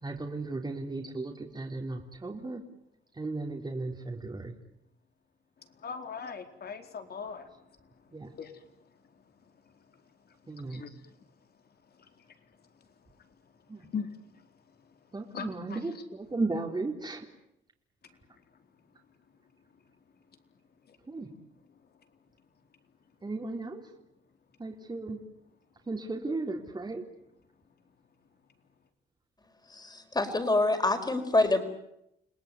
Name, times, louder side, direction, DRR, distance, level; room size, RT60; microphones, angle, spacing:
voice 1, 0.0-2.6 3.2-4.5 8.1-8.3 10.5-10.9 13.7-13.8 15.1-17.3 21.1-21.3 23.2-23.8 24.6-25.2 25.9-27.0, right 3 dB, 20° right, 1 dB, 3.6 m, -35 dB
voice 2, 5.8-7.5 8.4-8.6 10.7-11.0 13.9-14.1 15.3-15.8 20.9-21.0, left 6 dB, 55° left, 6 dB, 4.2 m, -39 dB
voice 3, 29.7-31.6, left 2 dB, 20° left, 7 dB, 5.2 m, -26 dB
29.5 x 20.0 x 9.6 m, 0.80 s
cardioid pair, 90°, 20 cm